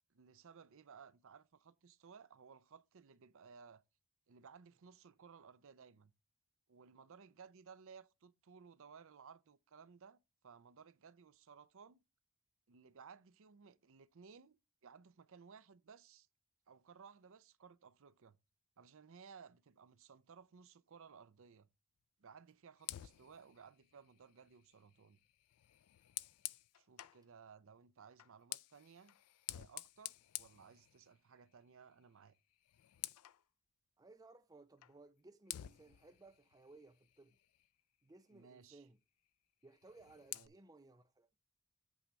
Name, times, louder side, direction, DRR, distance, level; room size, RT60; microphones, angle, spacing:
voice 1, 0.1-3.8 4.3-6.1 6.7-10.2 10.4-12.0 12.7-14.6 14.8-16.3 16.7-18.4 18.8-21.7 22.2-25.2 26.7-29.2 29.5-32.4 38.3-38.8 40.3-40.5, right 6 dB, 65° right, 0.6 m, -59 dB
Fire, 22.8-27.2 28.1-31.4 31.7-32.0 32.3-33.4 34.8-35.0 35.5-37.8 39.7-40.5, left 16 dB, 85° left, 0.4 m, -50 dB
voice 2, 34.0-37.4 38.0-39.0 39.6-41.3, right 2 dB, 15° right, 0.5 m, -61 dB
8.5 x 3.4 x 6.2 m
head